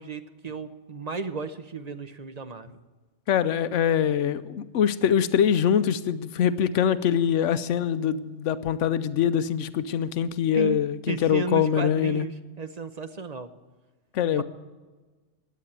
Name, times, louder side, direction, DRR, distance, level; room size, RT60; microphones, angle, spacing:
voice 1, 0.0-2.8 10.5-10.8 11.1-13.5 14.3-14.4, right 4 dB, 40° right, 10 dB, 0.8 m, -34 dB
voice 2, 3.3-12.3 14.1-14.4, left 8 dB, 75° left, 14 dB, 1.0 m, -24 dB
16.0 x 10.0 x 8.9 m, 1.3 s
omnidirectional pair, 1.3 m